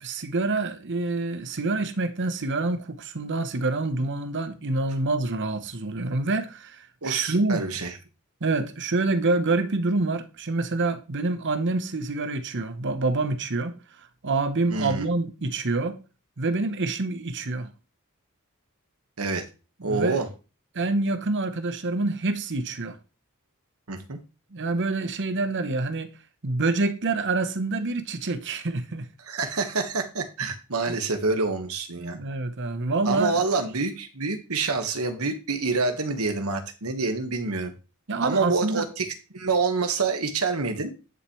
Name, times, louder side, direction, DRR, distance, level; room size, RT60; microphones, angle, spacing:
voice 1, 0.0-7.6 8.4-13.8 14.2-16.0 16.4-17.7 19.8-20.2 20.7-23.0 24.5-26.1 26.4-29.1 32.0-33.4 38.1-38.9, right 3 dB, 55° right, 1.0 m, -27 dB
voice 2, 7.0-7.9 14.7-15.1 19.2-19.4 19.8-20.3 23.9-24.2 29.3-32.2 33.0-37.7 38.2-39.1 39.3-40.9, right 3 dB, 75° right, 1.5 m, -27 dB
10.5 x 6.6 x 3.2 m
head